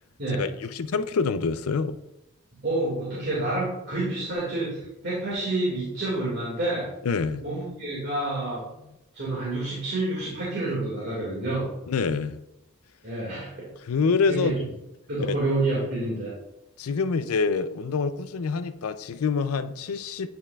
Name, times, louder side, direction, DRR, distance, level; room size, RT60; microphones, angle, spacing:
voice 1, 0.4-2.0 7.0-7.4 11.9-12.4 13.8-14.5 15.2-15.4 16.8-20.3, left 5 dB, 90° left, 0.5 m, -26 dB
voice 2, 2.6-6.9 7.4-8.6 9.1-11.7 13.0-13.7 14.3-14.6 15.1-16.3, right 2 dB, 50° right, 2.1 m, -28 dB
9.9 x 5.2 x 2.4 m
head